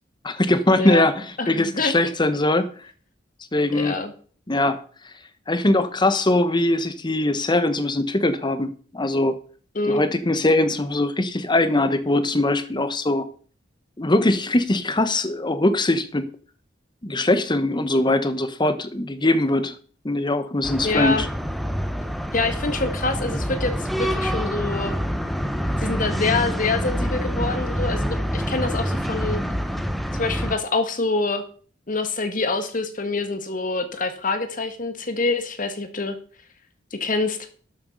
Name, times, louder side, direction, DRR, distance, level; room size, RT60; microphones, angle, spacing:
voice 1, 0.2-2.7 3.5-4.0 4.5-4.8 5.5-9.4 9.8-13.2 14.0-16.3 17.0-19.7 20.0-21.3, left 2 dB, 25° left, 1.1 m, -21 dB
voice 2, 0.7-1.1 1.4-1.9 3.7-4.1 9.8-10.0 20.8-21.3 22.3-25.0 25.8-29.4 30.2-31.4 31.9-36.2 36.9-37.5, left 3 dB, 45° left, 1.8 m, -26 dB
sound 1, 20.6-30.5, equal, ahead, 0.8 m, -26 dB
12.5 x 7.2 x 5.4 m
head